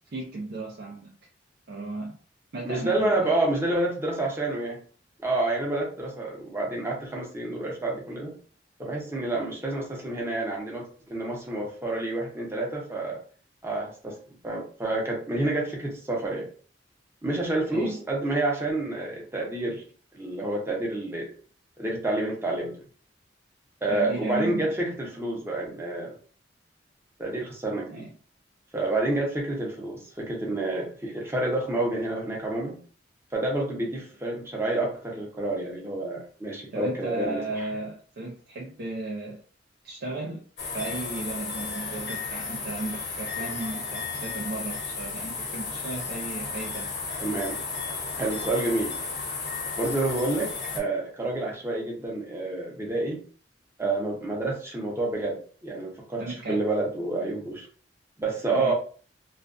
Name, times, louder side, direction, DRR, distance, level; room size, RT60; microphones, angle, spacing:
voice 1, 0.1-1.1 1.7-2.2 2.5-3.3 17.7-18.0 23.9-24.7 27.9-28.1 36.7-39.4 39.8-40.4 40.7-46.9 56.2-56.6 58.5-58.7, right 2 dB, 60° right, -3 dB, 0.5 m, -35 dB
voice 2, 2.6-4.8 5.2-8.3 8.8-13.2 13.6-14.2 14.4-16.5 17.2-19.8 20.1-21.3 21.8-22.8 23.8-26.1 27.2-27.9 28.7-32.8 33.3-37.7 47.2-47.6 48.2-48.9 49.8-53.2 53.8-56.2 56.5-57.7 58.2-58.7, right 2 dB, 15° right, -2 dB, 0.7 m, -29 dB
sound 1, 40.6-50.8, left 4 dB, 75° left, 0.9 m, -34 dB
2.4 x 2.2 x 2.4 m, 0.41 s
head